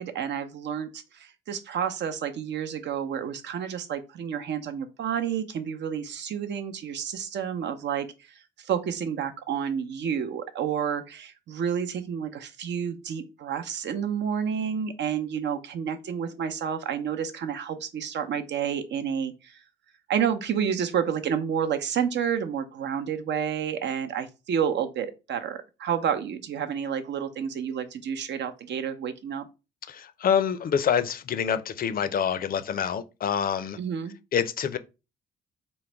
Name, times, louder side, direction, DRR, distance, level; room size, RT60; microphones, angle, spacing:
voice 1, 0.0-8.1 8.6-19.6 20.1-29.5 33.8-34.1, right 8 dB, 60° right, 0.7 m, -30 dB
voice 2, 29.9-33.8 34.3-34.8, left 8 dB, 50° left, 0.5 m, -26 dB
3.8 x 2.1 x 4.4 m
cardioid pair, 90°, 20 cm